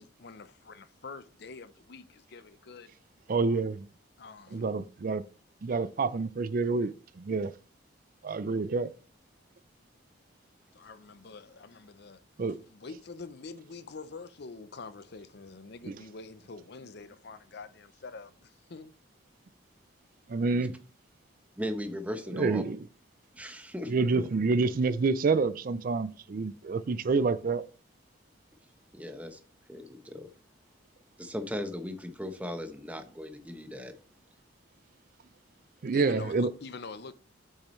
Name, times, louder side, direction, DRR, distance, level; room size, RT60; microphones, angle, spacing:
voice 1, 0.0-2.9 4.2-4.6 10.7-12.2 12.7-18.9 35.9-37.1, left 4 dB, 55° left, 0.6 m, -46 dB
voice 2, 3.3-3.9 4.5-5.2 5.6-7.5 8.2-8.9 12.4-12.6 15.9-16.0 20.3-20.8 22.3-22.8 23.9-27.6 35.8-36.5, right 4 dB, 45° right, 0.4 m, -28 dB
voice 3, 21.6-22.6 23.3-24.3 28.9-29.4 29.7-30.3 31.2-34.0, equal, 10° right, 0.8 m, -37 dB
8.2 x 6.4 x 3.1 m
head